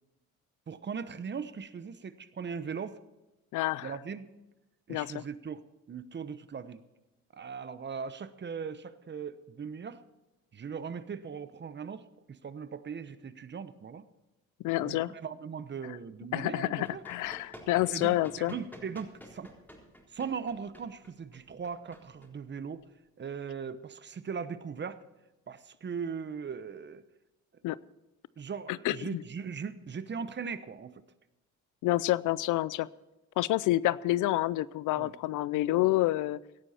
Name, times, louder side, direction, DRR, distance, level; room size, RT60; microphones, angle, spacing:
voice 1, 0.7-3.0 3.8-4.3 4.9-5.6 5.9-6.8 7.3-10.0 10.5-14.0 14.8-17.0 17.9-19.5 20.1-22.8 23.2-25.0 25.5-27.0 28.4-31.0 35.0-35.1, right 6 dB, 35° right, 13 dB, 1.0 m, -39 dB
voice 2, 3.5-3.9 4.9-5.2 14.6-15.1 16.3-18.5 27.6-27.8 28.8-29.2 31.8-32.9 33.4-36.4, left 16 dB, 85° left, 20 dB, 0.5 m, -28 dB
Run, 16.8-22.9, equal, 5° left, 4.0 m, -52 dB
17.5 x 12.0 x 4.3 m, 1.0 s
cardioid pair, 90°, 30 cm